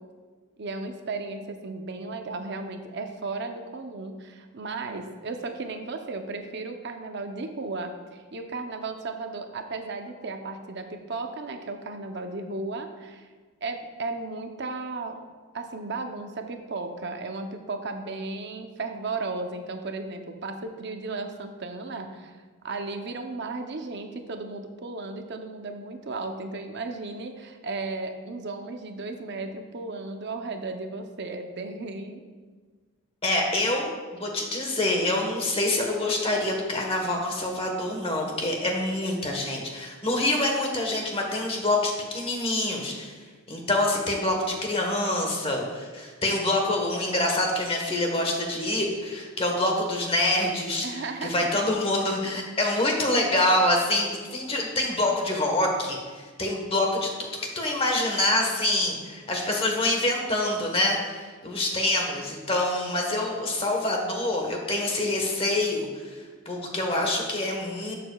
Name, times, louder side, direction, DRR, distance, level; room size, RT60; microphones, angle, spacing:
voice 1, 0.6-13.3 13.6-15.2 15.5-22.4 22.6-32.2 50.8-51.3 52.0-52.1, right 3 dB, 50° right, 5 dB, 0.7 m, -35 dB
voice 2, 33.2-43.1 43.5-57.3 57.5-67.9, left 1 dB, 25° left, 1 dB, 1.2 m, -26 dB
12.0 x 6.8 x 2.3 m, 1.4 s
head